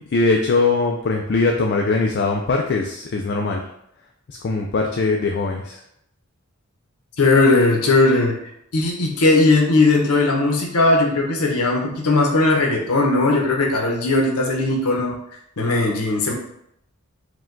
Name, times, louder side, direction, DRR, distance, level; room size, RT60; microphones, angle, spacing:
voice 1, 0.1-3.6 4.3-5.8, left 3 dB, 50° left, 2 dB, 0.4 m, -21 dB
voice 2, 7.2-15.2 15.6-16.3, left 2 dB, 80° left, 0 dB, 0.8 m, -18 dB
4.8 x 2.2 x 3.7 m, 0.75 s
head